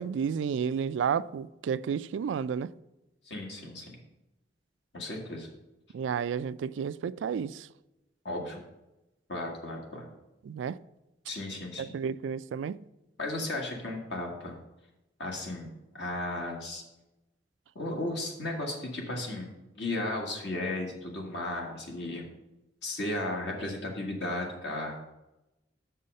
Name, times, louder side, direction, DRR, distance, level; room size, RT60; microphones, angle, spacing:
voice 1, 0.0-2.7 5.9-7.7 10.4-10.8 11.8-12.8, right 7 dB, 90° right, 0.3 m, -31 dB
voice 2, 3.3-4.0 4.9-5.5 8.2-8.6 9.3-10.1 11.3-11.9 13.2-14.6 15.2-16.8 17.7-22.2 22.8-25.0, left 1 dB, 70° left, 1.6 m, -35 dB
6.2 x 5.5 x 6.4 m
head